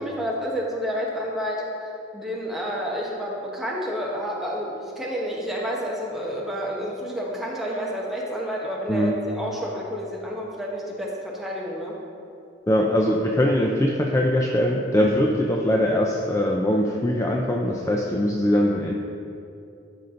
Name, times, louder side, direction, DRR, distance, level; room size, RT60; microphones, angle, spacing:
voice 1, 0.0-11.9, equal, ahead, -4 dB, 1.1 m, -30 dB
voice 2, 8.9-9.2 12.7-18.9, left 1 dB, 15° left, 0 dB, 0.4 m, -22 dB
12.0 x 5.3 x 3.8 m, 2.7 s
head